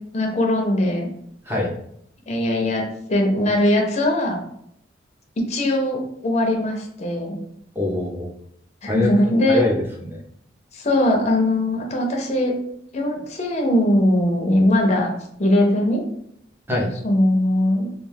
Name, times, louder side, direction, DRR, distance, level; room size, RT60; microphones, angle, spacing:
voice 1, 0.1-1.1 2.3-2.8 3.1-4.4 5.4-7.4 8.8-9.6 10.7-12.5 12.9-15.1 15.4-16.0 17.0-17.9, left 1 dB, 40° left, 1 dB, 0.5 m, -20 dB
voice 2, 7.7-8.3 8.9-9.1 9.5-10.2 16.7-16.9, left 2 dB, 10° right, -2 dB, 0.6 m, -23 dB
2.3 x 2.3 x 3.2 m, 0.71 s
head